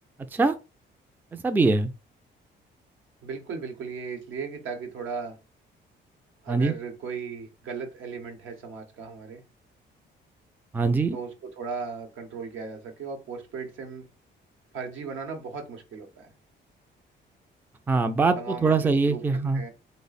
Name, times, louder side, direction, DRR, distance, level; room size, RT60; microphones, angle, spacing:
voice 1, 1.3-1.9 6.5-6.7 10.7-11.2 17.9-19.6, right 3 dB, 10° right, 0.3 m, -23 dB
voice 2, 3.2-5.4 6.4-9.4 11.1-14.1 14.7-16.3 18.4-19.2 19.5-19.7, right 5 dB, 80° right, 1.0 m, -36 dB
3.1 x 2.1 x 4.0 m
cardioid pair, 90°, 20 cm